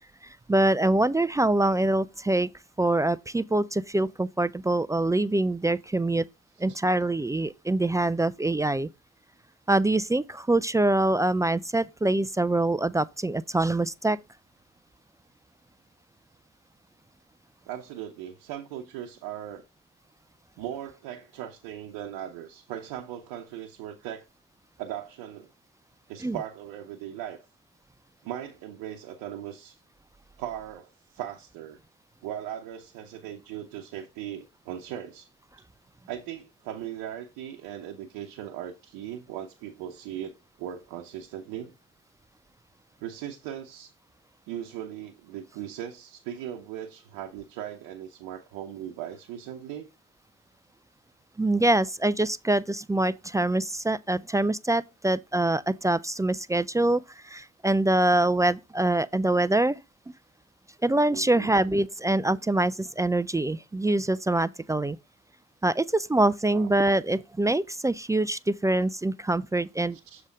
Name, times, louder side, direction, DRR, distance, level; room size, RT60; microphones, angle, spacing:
voice 1, 0.5-2.5 2.8-6.3 6.6-8.9 9.7-14.2 26.2-26.4 51.4-59.8 60.8-65.0 65.6-70.0, right 2 dB, 10° right, 0.3 m, -24 dB
voice 2, 17.7-19.6 20.6-24.3 24.8-25.5 26.1-27.4 28.2-29.8 30.4-31.8 32.2-35.3 36.1-41.7 43.0-43.9 44.5-49.9 61.1-61.5 66.5-66.7 69.9-70.2, right 11 dB, 80° right, 0.9 m, -38 dB
7.3 x 3.4 x 5.1 m
hypercardioid pair, 55°, 34 cm